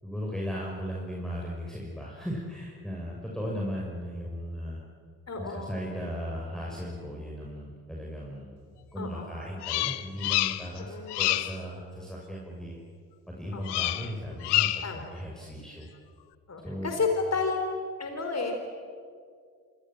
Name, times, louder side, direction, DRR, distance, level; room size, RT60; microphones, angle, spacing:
voice 1, 0.0-4.8 5.4-8.6 8.9-12.7 13.3-15.9 16.6-16.9, equal, ahead, -3 dB, 6.4 m, -36 dB
voice 2, 5.3-5.8 9.0-9.4 10.9-11.2 13.5-13.8 14.8-15.2 16.5-17.6 18.0-18.5, left 4 dB, 35° left, 4 dB, 4.6 m, -31 dB
Bird vocalization bird call bird song, 9.6-10.8 11.1-11.6 13.6-14.1 14.4-15.0, left 17 dB, 65° left, 1.0 m, -27 dB
28.0 x 26.5 x 7.6 m, 2.1 s
figure-of-eight pair, 40°, 44 cm